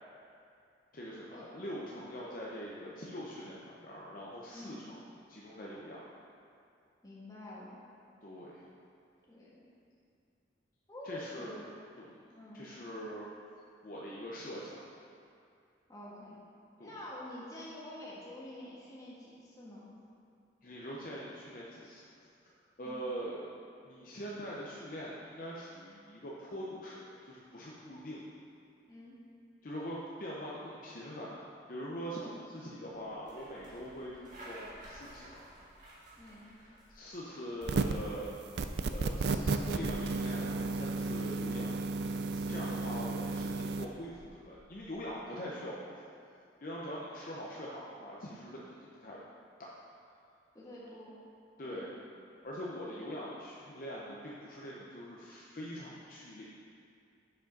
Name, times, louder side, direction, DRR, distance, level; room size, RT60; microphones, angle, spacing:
voice 1, 0.9-5.0 5.3-6.1 8.2-8.7 11.0-12.2 12.5-13.3 13.8-14.9 16.8-16.9 20.6-22.0 22.8-23.4 23.8-28.2 29.6-35.4 36.6-38.3 38.9-41.8 42.3-46.0 46.6-48.6 49.0-49.2 49.8-50.0 51.6-51.9 52.4-56.4, equal, 45° left, -5 dB, 0.7 m, -43 dB
voice 2, 4.5-4.8 7.0-7.8 9.3-9.7 10.9-11.7 12.3-12.7 15.9-16.4 16.8-19.9 22.8-23.0 28.9-29.1 32.2-32.4 36.2-36.5 42.4-42.7 50.5-51.2 51.6-51.9, left 1 dB, 20° left, -7 dB, 1.5 m, -48 dB
sound 1, 32.9-45.2, right 1 dB, 45° right, 1.8 m, -57 dB
sound 2, 37.6-38.1 38.6-43.8, right 3 dB, 60° right, 0.4 m, -33 dB
7.4 x 5.1 x 5.3 m, 2.4 s
head